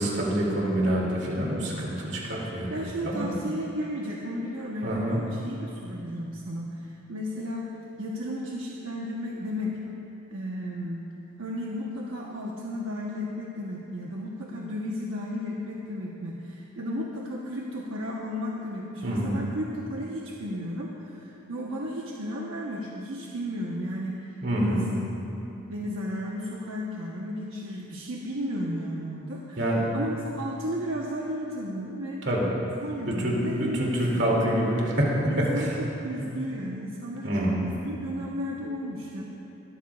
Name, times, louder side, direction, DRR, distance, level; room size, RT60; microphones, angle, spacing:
voice 1, 0.0-2.7 3.0-3.3 4.8-5.2 19.0-19.4 24.4-24.9 29.6-30.0 32.2-32.5 33.1-35.7 36.2-36.3 37.2-37.7, equal, 55° right, -3 dB, 2.6 m, -26 dB
voice 2, 2.7-7.7 8.0-9.8 10.3-11.0 11.4-24.8 25.7-29.6 29.9-32.3 32.8-33.9 34.1-34.6 35.3-39.2, equal, 75° right, -3 dB, 1.1 m, -34 dB
22.5 x 13.0 x 2.4 m, 3.0 s
head